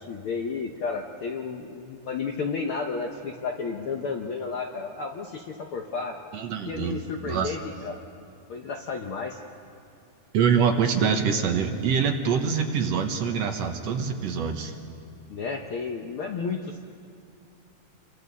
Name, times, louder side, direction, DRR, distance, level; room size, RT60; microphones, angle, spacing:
voice 1, 0.0-6.1 6.7-8.0 8.5-9.4 15.3-16.8, left 5 dB, 65° left, 2 dB, 1.3 m, -32 dB
voice 2, 6.3-7.0 7.2-7.6 10.3-14.7, right 6 dB, 65° right, 4 dB, 2.0 m, -25 dB
29.0 x 23.0 x 4.1 m, 2.4 s
omnidirectional pair, 3.5 m